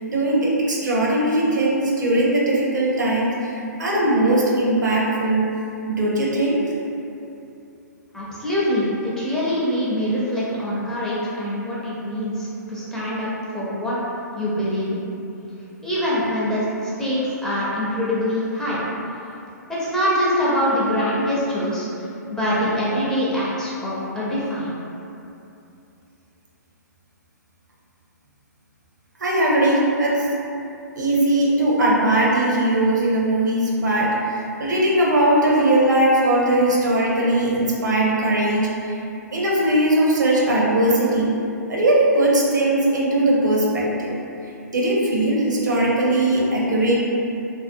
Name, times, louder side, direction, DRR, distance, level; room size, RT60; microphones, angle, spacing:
voice 1, 0.1-5.5 5.9-6.6 29.2-30.2 31.0-34.1 34.3-38.9 39.3-41.3 41.7-44.1 44.7-47.0, right 1 dB, 80° right, -4 dB, 0.6 m, -19 dB
voice 2, 8.1-14.0 14.4-15.1 15.8-18.8 19.8-21.9 22.3-24.8, equal, 5° left, -9 dB, 0.4 m, -24 dB
2.5 x 2.1 x 2.5 m, 2.7 s
hypercardioid pair, 130°, 10 cm